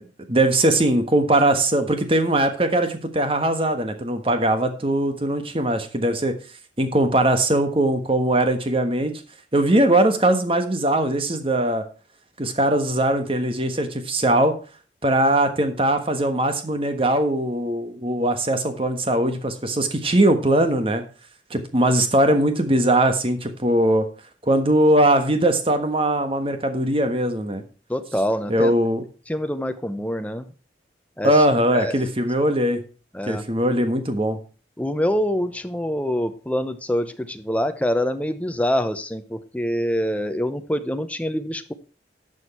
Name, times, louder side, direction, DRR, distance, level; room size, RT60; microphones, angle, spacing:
voice 1, 0.3-6.3 6.8-9.2 9.5-11.8 12.4-14.5 15.0-21.0 21.5-24.1 24.5-27.6 28.5-29.0 31.2-32.8 33.3-34.4, right 1 dB, 30° right, 8 dB, 1.4 m, -20 dB
voice 2, 27.9-28.7 29.3-30.5 31.2-31.3 31.7-31.9 33.1-33.4 34.8-41.7, equal, 10° left, 9 dB, 0.8 m, -25 dB
11.5 x 6.4 x 4.4 m, 0.37 s
head